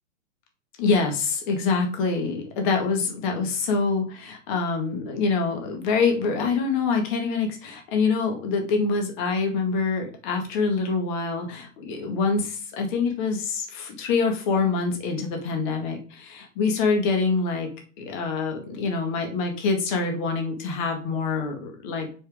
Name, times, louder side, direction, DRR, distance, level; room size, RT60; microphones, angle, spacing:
voice 1, 0.8-17.7 18.0-22.1, left 4 dB, 40° left, 4 dB, 1.8 m, -25 dB
6.2 x 5.2 x 3.6 m, 0.38 s
hypercardioid pair, 150°, 37 cm